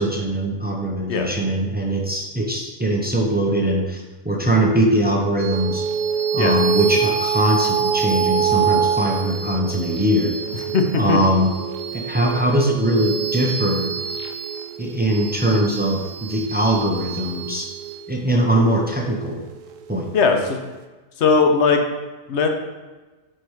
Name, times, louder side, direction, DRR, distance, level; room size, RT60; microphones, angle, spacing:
voice 1, 0.0-5.9 6.3-10.3 11.0-11.5 11.9-13.9 14.8-17.7 18.1-19.4 19.9-20.1, right 1 dB, 15° right, -1 dB, 0.3 m, -21 dB
sound 1, 5.4-20.1, right 7 dB, 90° right, 1.0 m, -26 dB
voice 2, 10.7-11.2 20.1-20.6 21.2-21.8 22.3-22.5, left 5 dB, 65° left, 4 dB, 0.9 m, -18 dB
4.9 x 4.4 x 4.6 m, 1.2 s
omnidirectional pair, 1.3 m